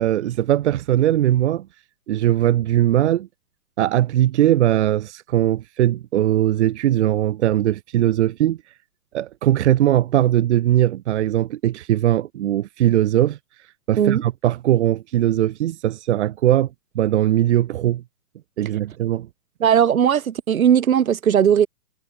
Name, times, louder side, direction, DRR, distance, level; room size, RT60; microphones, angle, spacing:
voice 1, 0.0-1.7 2.1-3.3 3.8-8.6 9.1-16.7 17.0-18.0 18.6-19.3, right 12 dB, 45° right, 1.7 m, -20 dB
voice 2, 19.6-21.7, right 9 dB, 60° right, 2.5 m, -17 dB
figure-of-eight pair, 125°, 46 cm